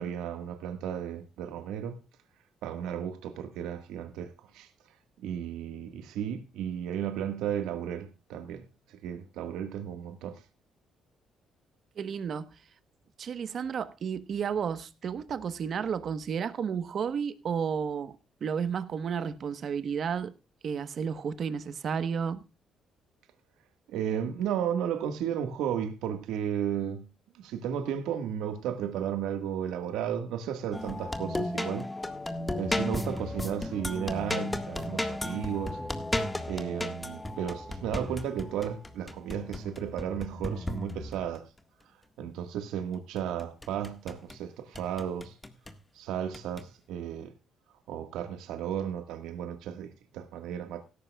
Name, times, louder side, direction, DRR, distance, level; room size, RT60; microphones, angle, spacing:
voice 1, 0.0-2.0 2.6-4.7 5.2-10.4 23.9-27.1 27.3-31.9 32.5-35.8 36.5-41.5 42.2-45.4 45.9-47.3 47.9-50.8, right 9 dB, 90° right, 1.7 m, -34 dB
voice 2, 12.0-12.5 13.2-18.1 18.4-20.3 20.6-22.4, right 7 dB, 50° right, 1.2 m, -32 dB
sound 1, 30.7-41.4 43.2-44.4 44.7-45.8 46.3-46.7, left 1 dB, 10° left, 1.7 m, -34 dB
16.5 x 13.5 x 2.4 m
cardioid pair, 115°, 0 cm